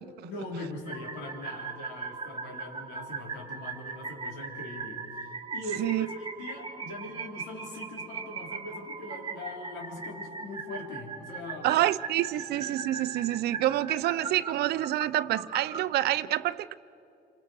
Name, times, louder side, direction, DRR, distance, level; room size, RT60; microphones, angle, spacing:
voice 1, 0.2-11.7, left 2 dB, 90° left, -1 dB, 4.4 m, -41 dB
sound 1, 0.9-15.8, right 5 dB, 30° right, 1.3 m, -39 dB
voice 2, 11.6-16.7, right 14 dB, 70° right, 15 dB, 0.6 m, -27 dB
28.0 x 26.5 x 4.8 m, 2.8 s
cardioid pair, 110°, 17 cm